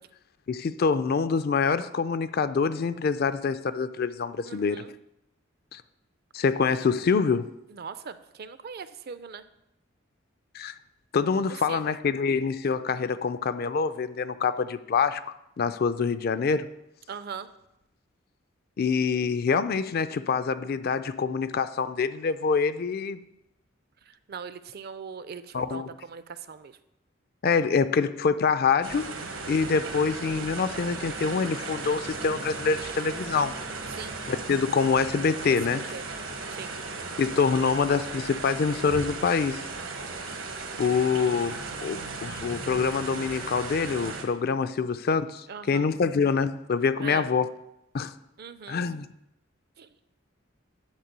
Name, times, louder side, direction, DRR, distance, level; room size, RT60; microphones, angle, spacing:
voice 1, 0.5-4.8 5.7-5.8 6.3-7.5 10.5-10.7 11.1-15.2 15.6-16.7 18.8-23.2 25.5-25.9 27.4-29.1 29.5-33.5 34.3-35.8 37.2-39.6 40.8-41.6 41.8-47.5 47.9-48.1 48.7-49.1, left 5 dB, 50° left, 13 dB, 0.4 m, -25 dB
voice 2, 4.5-4.9 7.7-9.4 11.5-11.9 17.1-17.5 24.1-26.8 29.6-30.0 33.9-34.2 35.5-36.0 36.5-36.7 45.5-45.9 47.0-47.3 48.4-48.8 49.8-49.9, right 6 dB, 55° right, 13 dB, 0.5 m, -40 dB
sound 1, 28.8-44.2, right 3 dB, 85° right, 1.5 m, -36 dB
10.5 x 4.4 x 6.7 m, 0.85 s
head